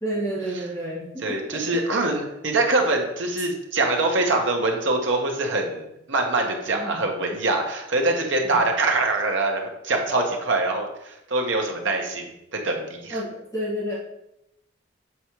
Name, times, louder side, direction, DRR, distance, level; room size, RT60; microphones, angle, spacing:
voice 1, 0.0-1.0 1.3-1.4 6.7-7.0 8.4-8.6 13.1-14.0, right 1 dB, 15° left, -7 dB, 1.5 m, -29 dB
voice 2, 1.2-13.2, right 2 dB, 70° right, 2 dB, 1.1 m, -24 dB
7.1 x 4.7 x 3.1 m, 0.83 s
head